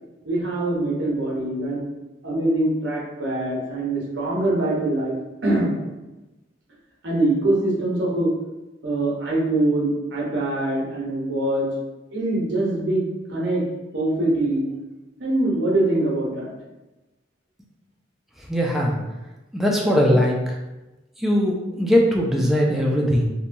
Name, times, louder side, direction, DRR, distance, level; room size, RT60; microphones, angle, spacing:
voice 1, 0.2-1.8 2.2-5.1 5.4-5.7 7.0-8.3 8.8-11.7 12.1-13.0 13.3-13.6 13.9-14.6 15.2-16.5, right 2 dB, 65° right, -4 dB, 0.8 m, -23 dB
voice 2, 18.4-19.0 19.5-20.6 21.2-23.3, equal, ahead, -2 dB, 0.3 m, -20 dB
2.9 x 2.2 x 2.5 m, 1.1 s
head